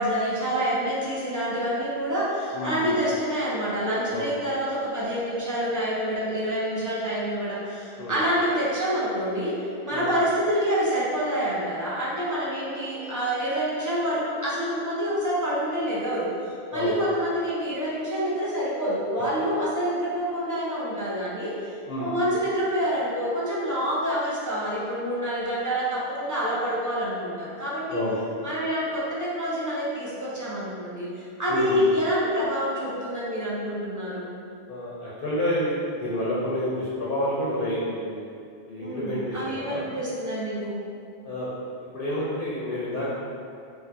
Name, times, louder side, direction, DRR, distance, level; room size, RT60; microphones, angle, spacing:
voice 1, 0.0-28.0 28.4-34.3 38.8-40.8, equal, 30° right, -8 dB, 0.4 m, -27 dB
voice 2, 2.5-3.0 4.1-4.3 8.0-8.2 9.9-10.1 16.7-17.0 19.2-19.3 21.9-22.1 27.9-28.2 31.5-31.8 34.7-38.2 38.7-39.8 41.2-41.5 41.9-43.1, left 1 dB, 65° left, -8 dB, 0.7 m, -29 dB
2.6 x 2.1 x 3.3 m, 2.4 s
omnidirectional pair, 1.1 m